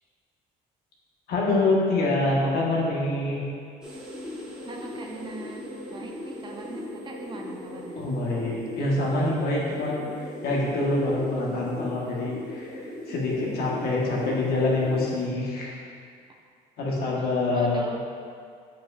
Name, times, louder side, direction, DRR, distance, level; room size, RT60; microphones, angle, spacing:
voice 1, 1.3-3.4 7.9-15.8 16.8-17.8, left 2 dB, 70° left, -4 dB, 1.4 m, -26 dB
sound 1, 3.8-15.3, left 1 dB, 5° right, 1.4 m, -38 dB
voice 2, 4.6-8.0 11.5-11.7 17.2-17.3 17.5-18.0, right 3 dB, 25° right, 1 dB, 0.6 m, -41 dB
7.6 x 5.0 x 2.5 m, 2.2 s
cardioid pair, 110°, 17 cm